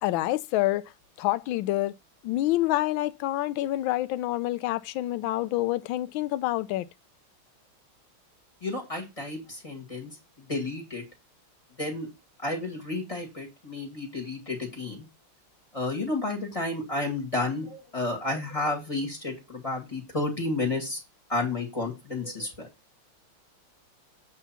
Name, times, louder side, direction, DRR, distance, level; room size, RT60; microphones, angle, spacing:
voice 1, 0.0-0.8 1.2-1.9 2.2-6.9, left 16 dB, 75° left, 1.3 m, -27 dB
voice 2, 8.6-11.0 11.8-12.1 12.4-15.1 15.7-21.0 21.3-22.7, left 2 dB, 15° left, 2.1 m, -31 dB
8.1 x 3.7 x 5.7 m
omnidirectional pair, 2.4 m